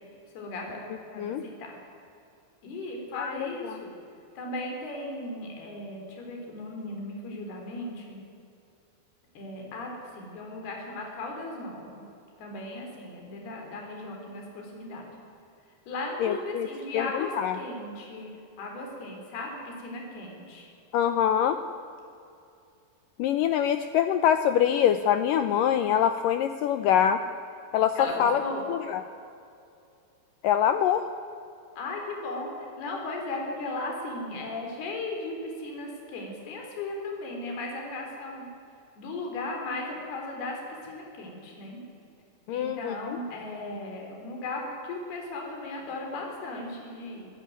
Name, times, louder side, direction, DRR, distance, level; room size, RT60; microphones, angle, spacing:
voice 1, 0.3-0.8 1.1-1.8 2.6-3.9 4.4-8.2 9.4-12.0 12.4-15.1 15.9-20.7 26.7-26.9 28.0-28.7 31.8-38.5 39.0-41.8 42.5-47.3, left 2 dB, 65° left, 1 dB, 5.8 m, -36 dB
voice 2, 3.1-3.8 16.2-16.7 16.9-17.6 20.9-21.6 23.2-27.2 27.7-28.4 28.7-29.0 30.4-31.1 42.5-43.2, left 9 dB, 85° left, 9 dB, 1.9 m, -24 dB
26.5 x 16.0 x 9.5 m, 2.6 s
omnidirectional pair, 4.9 m